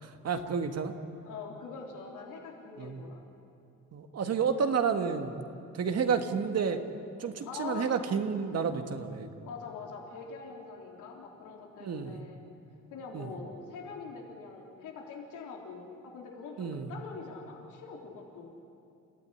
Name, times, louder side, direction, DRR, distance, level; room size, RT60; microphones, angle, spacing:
voice 1, 0.0-0.9 2.8-3.0 3.9-5.4 5.7-6.8 7.2-9.3 11.8-12.2 13.1-13.3 16.6-16.9, right 6 dB, 55° right, 6 dB, 1.9 m, -30 dB
voice 2, 1.2-3.2 7.4-8.0 9.4-12.4 12.9-18.5, left 5 dB, 90° left, 0 dB, 3.6 m, -44 dB
29.0 x 15.0 x 9.9 m, 2.6 s
cardioid pair, 90°, 30 cm